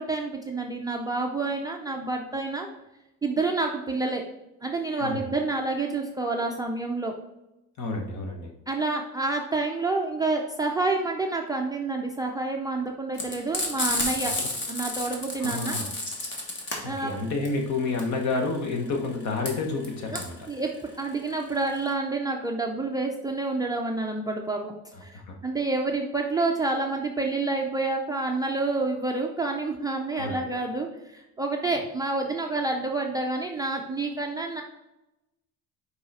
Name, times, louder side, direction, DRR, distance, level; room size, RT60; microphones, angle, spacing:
voice 1, 0.0-2.7 3.2-4.3 4.6-7.1 8.7-14.4 14.7-15.8 16.8-17.2 20.1-20.2 20.5-24.7 25.0-34.6, right 3 dB, 10° right, 0 dB, 0.4 m, -28 dB
voice 2, 7.8-8.5 14.4-14.5 15.1-15.9 16.8-20.4 25.1-25.4 30.2-30.6, left 3 dB, 55° left, 3 dB, 1.3 m, -30 dB
Frying (food), 13.1-21.9, left 2 dB, 35° left, 1.4 m, -31 dB
5.5 x 4.9 x 4.1 m, 0.93 s
cardioid pair, 165°, 34 cm